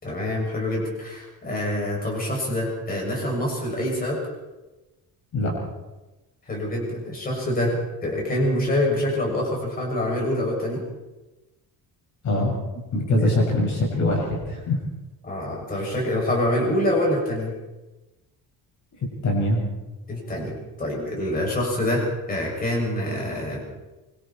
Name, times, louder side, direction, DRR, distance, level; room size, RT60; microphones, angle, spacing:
voice 1, 0.0-4.2 6.5-10.8 13.2-13.4 15.2-17.5 20.1-23.7, left 1 dB, 25° left, -2 dB, 7.0 m, -26 dB
voice 2, 12.9-14.8 15.7-15.8 19.2-19.6, left 1 dB, 50° left, -1 dB, 6.4 m, -22 dB
25.0 x 24.5 x 4.5 m, 1.1 s
cardioid pair, 175°, 38 cm